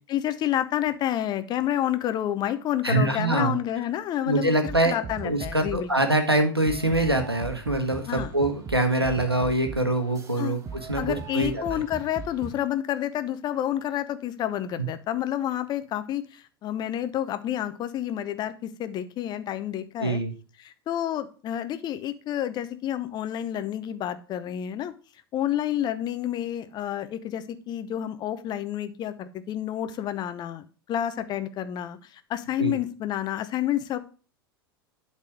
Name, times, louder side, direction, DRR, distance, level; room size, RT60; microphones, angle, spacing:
voice 1, 0.1-5.9 8.1-8.3 10.4-10.5 10.9-20.2 20.6-24.9 25.3-34.0, left 11 dB, 35° left, 11 dB, 0.9 m, -29 dB
voice 2, 2.8-3.6 4.3-11.8 14.8-14.9 20.0-20.3 32.6-32.7, right 2 dB, 90° right, 6 dB, 1.4 m, -24 dB
sound 1, 4.7-6.0 6.7-12.6, right 5 dB, 25° right, 1.6 m, -39 dB
11.5 x 4.2 x 4.9 m, 0.37 s
figure-of-eight pair, 80°, 13 cm